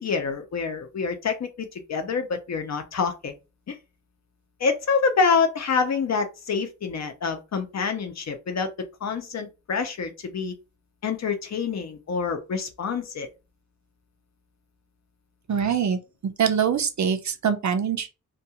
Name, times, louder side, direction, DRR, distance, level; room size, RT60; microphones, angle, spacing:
voice 1, 0.0-3.3 3.7-3.8 4.6-8.7 9.0-10.5 11.0-13.3, left 5 dB, 55° left, 0.6 m, -26 dB
voice 2, 15.5-18.1, right 7 dB, 60° right, 0.5 m, -24 dB
2.3 x 2.3 x 2.8 m
wide cardioid pair, 165°, 33 cm